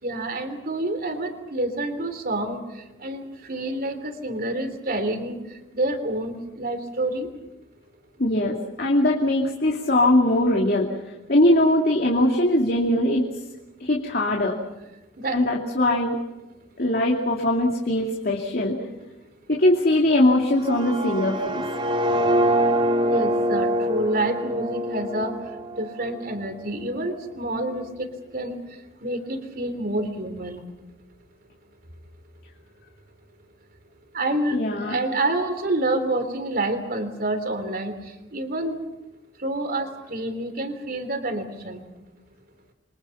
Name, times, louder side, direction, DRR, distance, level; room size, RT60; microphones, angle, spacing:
voice 1, 0.0-5.4 5.7-7.3 15.2-15.4 23.0-25.3 25.8-28.1 28.3-28.6 29.0-30.6 34.1-38.0 38.3-38.8 39.4-41.8, right 1 dB, 50° right, 8 dB, 3.4 m, -28 dB
voice 2, 8.2-10.9 11.3-13.3 13.8-14.6 15.3-16.2 16.8-18.8 19.5-21.7 34.5-35.0, left 1 dB, 50° left, 0 dB, 2.7 m, -21 dB
sound 1, 20.5-26.5, right 1 dB, 25° right, 2.7 m, -25 dB
28.5 x 24.5 x 5.9 m, 1.0 s
head